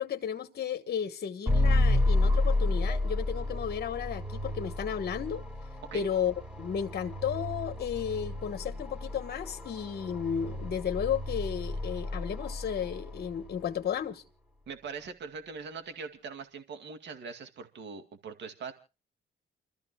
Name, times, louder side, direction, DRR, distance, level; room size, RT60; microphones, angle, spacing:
voice 1, 0.0-5.4 5.9-14.2, left 8 dB, 55° left, 1.2 m, -33 dB
sound 1, 1.5-13.6, left 2 dB, 10° right, 3.0 m, -31 dB
voice 2, 14.7-18.7, right 5 dB, 65° right, 2.2 m, -42 dB
29.5 x 13.5 x 2.2 m
cardioid pair, 90°, 20 cm